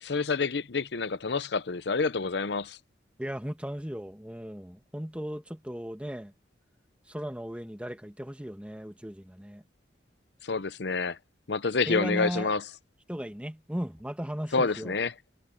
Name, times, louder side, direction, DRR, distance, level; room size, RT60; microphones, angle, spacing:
voice 1, 0.0-2.8 10.4-11.2 11.5-12.6 14.5-15.1, left 4 dB, 70° left, 0.8 m, -28 dB
voice 2, 3.2-6.3 7.1-9.6 11.9-12.5 13.1-14.9, equal, 5° right, 1.4 m, -36 dB
head